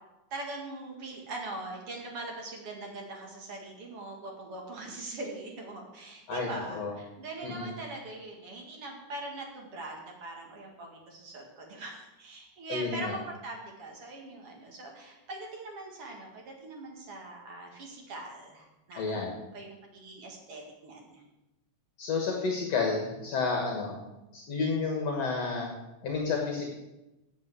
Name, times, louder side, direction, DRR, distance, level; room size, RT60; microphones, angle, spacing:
voice 1, 0.3-19.2 19.5-21.2, right 2 dB, 50° right, 0 dB, 2.8 m, -42 dB
voice 2, 6.3-6.9 7.4-7.7 12.7-13.2 18.9-19.3 22.0-24.0 24.3-25.7 26.0-26.7, left 4 dB, 60° left, 1 dB, 2.4 m, -31 dB
8.6 x 8.0 x 8.0 m, 0.98 s
omnidirectional pair, 3.4 m